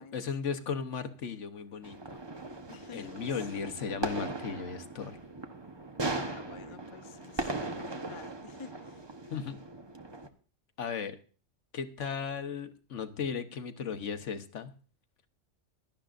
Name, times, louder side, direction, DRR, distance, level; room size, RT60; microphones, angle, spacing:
voice 1, 0.0-2.2 2.9-5.2 9.3-9.6 10.8-11.2 11.7-14.7, left 6 dB, 70° left, 1.3 m, -36 dB
sound 1, 1.8-10.3, right 2 dB, 20° right, 0.9 m, -39 dB
voice 2, 2.7-4.0 6.0-9.1, left 6 dB, 35° left, 0.4 m, -50 dB
17.5 x 12.0 x 2.5 m
omnidirectional pair, 1.3 m